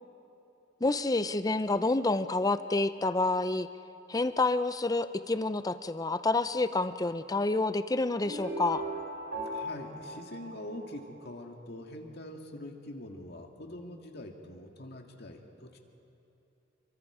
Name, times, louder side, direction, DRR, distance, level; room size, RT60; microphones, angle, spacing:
voice 1, 0.8-3.7 4.1-8.9, left 2 dB, 20° left, 12 dB, 0.5 m, -28 dB
sound 1, 8.2-11.3, right 1 dB, 75° right, 3.6 m, -38 dB
voice 2, 9.5-15.8, left 1 dB, 55° left, 3 dB, 1.9 m, -44 dB
28.0 x 24.0 x 4.9 m, 2.9 s
head